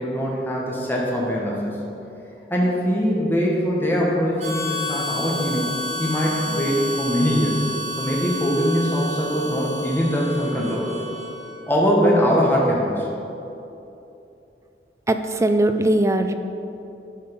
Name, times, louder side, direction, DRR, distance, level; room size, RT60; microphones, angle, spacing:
voice 1, 0.0-1.7 2.5-5.7 6.0-7.6 8.0-10.9 11.7-13.1, equal, 10° left, -4 dB, 1.3 m, -22 dB
Harmonica, 4.4-11.7, left 1 dB, 40° right, 1.5 m, -31 dB
voice 2, 15.1-16.3, right 1 dB, 15° right, 8 dB, 0.4 m, -20 dB
11.0 x 5.4 x 5.2 m, 2.9 s
head